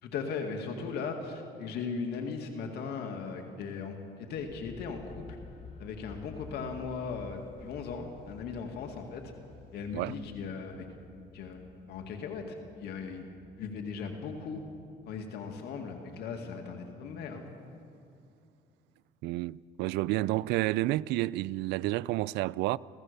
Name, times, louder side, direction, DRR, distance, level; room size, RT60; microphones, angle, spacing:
voice 1, 0.0-5.4 5.8-9.3 9.7-10.9 11.3-13.3 13.6-14.7 15.1-17.5, left 5 dB, 75° left, 2.1 m, -38 dB
sound 1, 4.4-16.2, left 4 dB, 40° left, 2.3 m, -52 dB
voice 2, 19.2-22.8, right 18 dB, 85° right, 0.4 m, -30 dB
26.5 x 16.5 x 6.8 m
cardioid pair, 110°, 17 cm